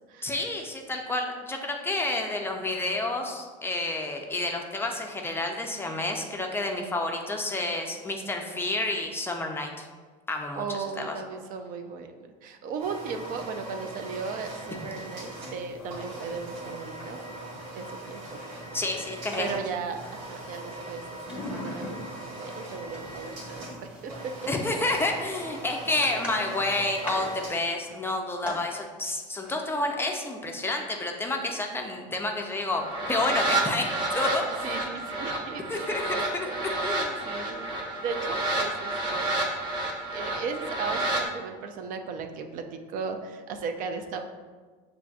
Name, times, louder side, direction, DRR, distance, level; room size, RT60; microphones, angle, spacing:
voice 1, 0.2-9.9 10.3-11.2 18.7-19.6 24.5-33.9 34.1-34.6 35.7-37.2, left 2 dB, 15° left, 2 dB, 0.4 m, -30 dB
voice 2, 10.6-17.5 17.7-18.4 19.4-21.0 21.3-24.3 26.1-26.2 34.6-39.4 40.1-44.2, right 5 dB, 55° right, 6 dB, 0.4 m, -37 dB
sound 1, 12.8-27.5, right 1 dB, 90° right, 1.3 m, -41 dB
sound 2, 15.8-16.4 16.7-17.4 18.5-20.3 20.7-22.4 22.8-28.6 29.3-29.6 31.1-31.2 31.4-31.5, left 1 dB, 5° right, 1.1 m, -42 dB
sound 3, 32.8-41.2, right 2 dB, 25° right, 0.8 m, -30 dB
5.7 x 2.5 x 2.3 m, 1.4 s
supercardioid pair, 125°, 17 cm